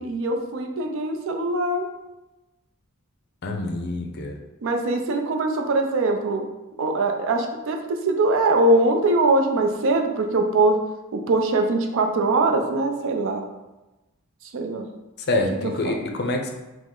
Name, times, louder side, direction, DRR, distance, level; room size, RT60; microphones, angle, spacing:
voice 1, 0.0-1.9 4.6-6.5 6.8-10.8 11.1-13.4 14.5-14.8 15.6-16.0, right 2 dB, 60° right, 4 dB, 0.4 m, -22 dB
voice 2, 3.4-4.4 15.3-16.5, left 2 dB, 45° left, 3 dB, 0.5 m, -26 dB
5.0 x 2.0 x 3.7 m, 1.1 s
head